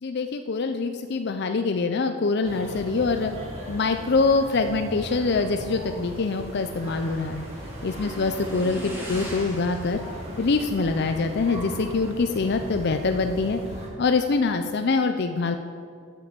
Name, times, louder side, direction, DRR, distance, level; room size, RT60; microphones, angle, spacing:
voice 1, 0.0-3.3 3.7-7.5 7.8-8.8 9.1-10.0 10.4-13.6 14.0-15.6, left 4 dB, 50° left, 7 dB, 0.5 m, -24 dB
sound 1, 2.4-13.9, equal, 30° right, 2.0 m, -38 dB
Motorcycle / Engine, 5.1-14.3, right 1 dB, 10° right, 1.7 m, -43 dB
9.1 x 7.6 x 7.6 m, 2.3 s
head